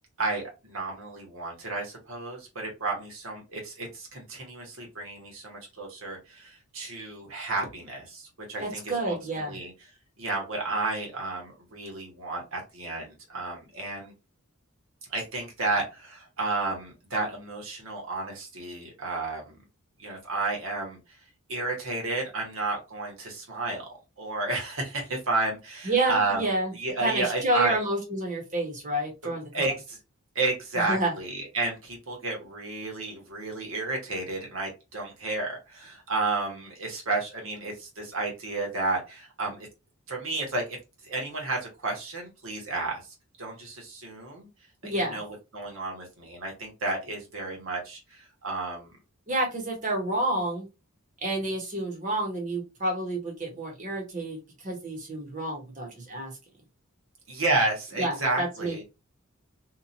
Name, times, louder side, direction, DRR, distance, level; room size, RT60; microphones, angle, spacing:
voice 1, 0.2-9.7 10.2-14.1 15.1-19.6 20.0-21.0 21.5-26.4 26.7-27.8 29.2-30.0 30.3-39.7 40.1-40.8 41.0-43.0 43.4-44.5 44.8-48.9 57.3-58.8, right 3 dB, 65° right, 0 dB, 1.2 m, -32 dB
voice 2, 8.6-9.6 25.8-26.7 27.0-29.7 30.8-31.1 44.8-45.2 49.3-50.7 51.2-56.3 58.0-58.8, right 2 dB, 35° right, 1 dB, 1.0 m, -29 dB
2.9 x 2.4 x 2.5 m, 0.27 s
head